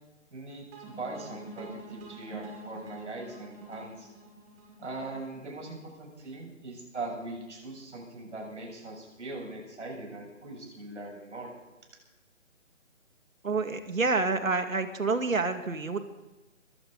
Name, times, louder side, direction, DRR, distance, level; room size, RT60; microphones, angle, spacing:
voice 1, 0.3-4.1 4.8-11.5, right 2 dB, 60° right, 1 dB, 7.2 m, -41 dB
sound 1, 0.7-5.8, right 2 dB, 10° right, 2.3 m, -46 dB
voice 2, 13.4-16.0, right 3 dB, 85° right, 7 dB, 2.4 m, -28 dB
21.5 x 16.5 x 4.1 m, 1.0 s
hypercardioid pair, 165°, 39 cm